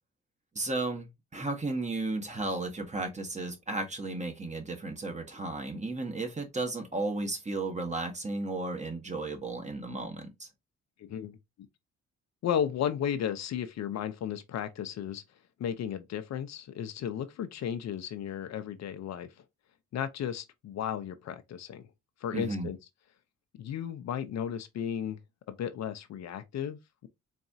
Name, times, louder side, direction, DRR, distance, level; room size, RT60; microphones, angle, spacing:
voice 1, 0.5-10.5 22.3-22.7, right 2 dB, 25° right, 1.2 m, -34 dB
voice 2, 11.0-11.4 12.4-15.2 15.6-19.3 19.9-21.8 22.2-22.8 23.5-25.2 25.5-27.1, left 9 dB, 60° left, 0.7 m, -34 dB
4.1 x 3.5 x 2.6 m
cardioid pair, 90°, 30 cm